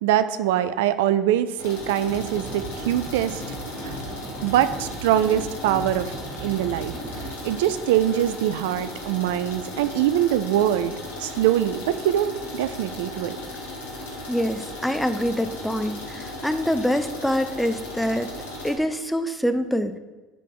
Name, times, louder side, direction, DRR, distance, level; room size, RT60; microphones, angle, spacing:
voice 1, 0.0-3.6 3.8-4.0 4.4-6.1 6.4-7.0 7.4-13.4, right 11 dB, 75° right, 13 dB, 0.4 m, -23 dB
sound 1, 1.6-18.7, left 1 dB, 85° left, 1.8 m, -36 dB
sound 2, 2.1-9.1, right 2 dB, 35° right, 1.5 m, -38 dB
voice 2, 14.3-18.3 18.6-19.9, equal, 5° left, 9 dB, 0.7 m, -25 dB
8.4 x 3.7 x 6.8 m, 1.2 s
hypercardioid pair, 70°, 0 cm